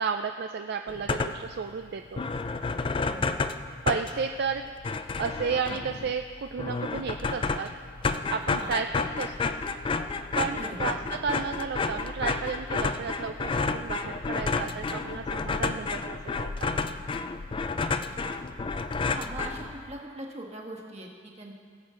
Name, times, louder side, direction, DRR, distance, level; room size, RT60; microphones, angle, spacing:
voice 1, 0.0-2.2 3.9-4.7 5.2-7.7 8.3-9.6 10.4-16.8, right 6 dB, 55° right, 6 dB, 0.4 m, -32 dB
sound 1, 0.9-1.6 1.9-2.0 2.2-20.0, left 4 dB, 25° left, 0.3 m, -31 dB
voice 2, 10.5-10.9 18.2-18.4 19.1-21.5, right 1 dB, 35° right, -1 dB, 1.5 m, -41 dB
19.0 x 8.1 x 3.8 m, 2.1 s
head